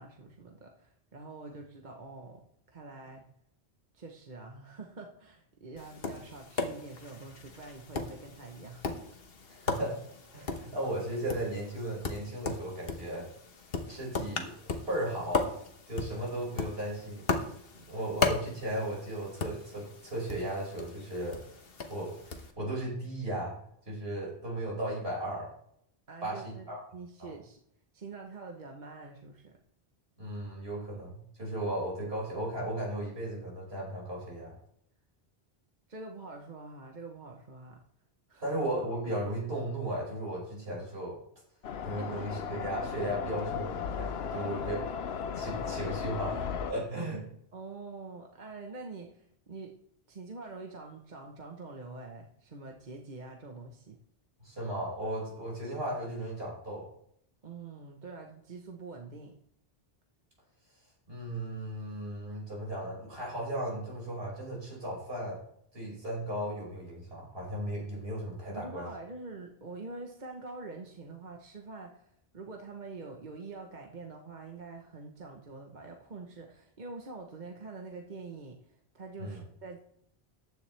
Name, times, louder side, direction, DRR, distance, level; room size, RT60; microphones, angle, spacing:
voice 1, 0.0-3.3 3.9-9.2 26.1-27.6 27.9-29.6 35.9-37.8 38.3-38.5 42.0-42.1 44.3-44.7 47.5-49.8 50.1-54.0 57.4-59.3 68.5-79.8, right 3 dB, 50° right, 1 dB, 1.2 m, -45 dB
Tap, 5.8-22.5, left 4 dB, 70° left, 1.4 m, -37 dB
voice 2, 9.5-10.0 10.3-13.3 13.9-15.5 15.9-17.2 17.9-21.4 21.9-23.6 23.9-25.5 26.2-26.8 27.2-27.3 30.2-34.5 38.4-41.1 41.8-44.8 45.3-46.4 46.7-47.2 54.4-56.9 61.1-65.4 65.7-68.9 79.2-79.4, right 1 dB, 75° right, -4 dB, 5.9 m, -36 dB
sound 1, 41.6-46.7, left 7 dB, 85° left, 1.0 m, -36 dB
14.5 x 9.9 x 3.4 m, 0.70 s
omnidirectional pair, 1.0 m